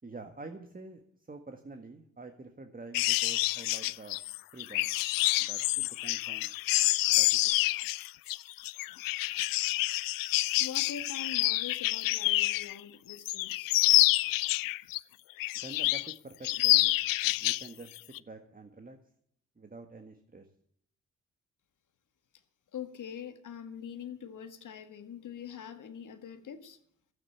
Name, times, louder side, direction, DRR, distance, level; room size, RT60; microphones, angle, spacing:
voice 1, 0.0-1.0 1.3-4.2 4.5-4.9 5.4-6.5 7.1-7.4 15.5-17.0 17.4-17.9 18.2-19.0 19.6-20.5, right 3 dB, 25° right, 1.7 m, -47 dB
sound 1, 2.9-12.8 13.1-15.0 15.4-16.1 16.4-17.7 18.0-18.2, left 19 dB, 85° left, 0.5 m, -28 dB
voice 2, 10.6-13.7 22.7-26.8, left 8 dB, 65° left, 1.7 m, -43 dB
12.0 x 8.9 x 8.6 m
supercardioid pair, 55°, 33 cm